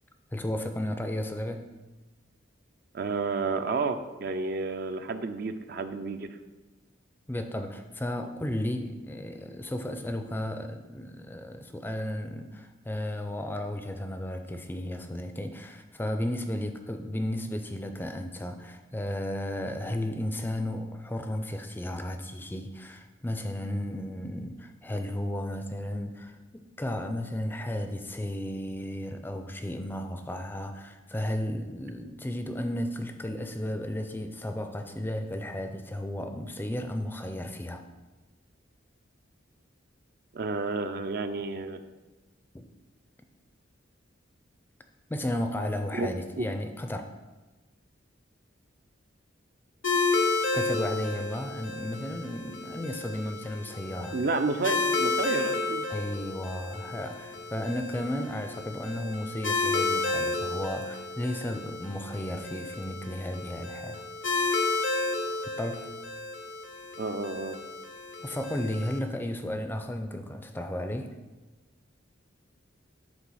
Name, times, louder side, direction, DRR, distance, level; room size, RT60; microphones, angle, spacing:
voice 1, 0.3-1.7 7.3-26.4 26.8-37.8 42.5-42.7 45.1-47.1 50.5-54.2 55.9-64.0 65.5-65.9 68.2-71.1, left 1 dB, 10° left, 6 dB, 0.4 m, -34 dB
voice 2, 2.9-6.3 40.3-41.8 45.9-46.1 46.4-46.5 54.1-55.8 67.0-67.6, right 3 dB, 50° right, 9 dB, 0.5 m, -31 dB
sound 1, 49.8-69.0, left 3 dB, 75° left, 0.8 m, -32 dB
9.7 x 3.3 x 6.2 m, 1.2 s
head